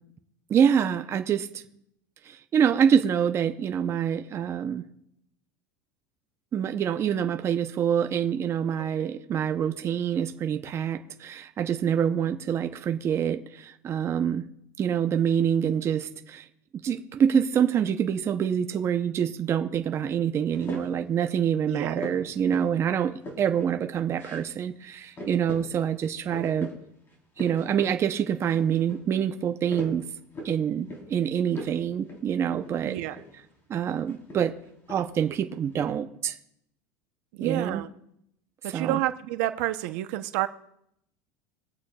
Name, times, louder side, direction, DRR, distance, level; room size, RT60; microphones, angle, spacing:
voice 1, 0.5-1.6 2.3-4.8 6.5-14.5 14.8-16.4 16.8-26.7 27.4-30.1 30.4-33.0 33.7-34.5 34.9-36.4 37.4-37.8 38.7-39.0, right 8 dB, 30° right, 7 dB, 0.7 m, -26 dB
sound 1, 20.5-21.1 22.0-22.8 23.0-23.7 24.1-24.5 24.8-24.9 25.2-25.7 26.0-26.7 27.1-28.0 28.3-29.0 29.4-30.6 30.9-31.2 31.5-31.8 32.1-32.2 32.6-33.4 34.1-35.2 35.5-35.9, left 1 dB, 25° left, 3.8 m, -40 dB
voice 2, 32.8-33.2 37.3-37.9 38.6-40.5, right 15 dB, 70° right, 10 dB, 0.8 m, -29 dB
24.5 x 8.3 x 2.4 m, 0.77 s
supercardioid pair, 130°, 9 cm